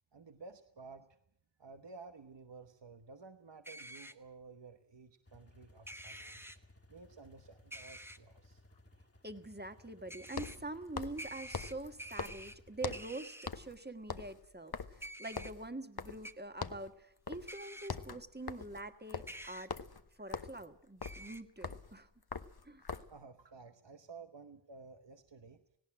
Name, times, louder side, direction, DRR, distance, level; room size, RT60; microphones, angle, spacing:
voice 1, 0.1-1.1 1.6-6.5 6.9-8.6 23.0-25.6, right 4 dB, 70° right, 8 dB, 1.1 m, -54 dB
sound 1, 3.6-4.1 5.9-6.6 7.7-8.2 10.1-10.6 11.2-12.6 12.9-13.5 15.0-15.5 16.2-16.3 17.5-17.9 19.3-19.7 21.0-21.4, right 1 dB, 5° right, 1.1 m, -48 dB
sound 2, 5.3-13.0, left 1 dB, 30° left, 1.9 m, -62 dB
sound 3, 6.9-7.0 10.3-13.2 13.5-13.8 14.0-16.3 16.6-16.9 17.3-17.5 17.8-23.2, left 5 dB, 55° left, 0.9 m, -43 dB
voice 2, 9.2-19.7 20.2-22.1 22.6-22.9, right 2 dB, 20° right, 8 dB, 1.5 m, -45 dB
18.0 x 17.5 x 8.8 m, 0.71 s
wide cardioid pair, 50°, 45 cm